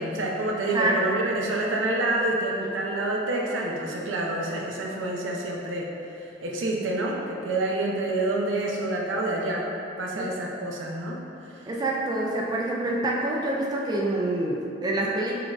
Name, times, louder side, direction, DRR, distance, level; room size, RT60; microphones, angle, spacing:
voice 1, 0.0-5.9 6.4-9.7 10.0-11.2, right 2 dB, 85° right, -1 dB, 0.5 m, -27 dB
voice 2, 11.7-15.4, right 1 dB, 20° right, -3 dB, 0.3 m, -26 dB
5.8 x 2.3 x 2.4 m, 2.6 s
head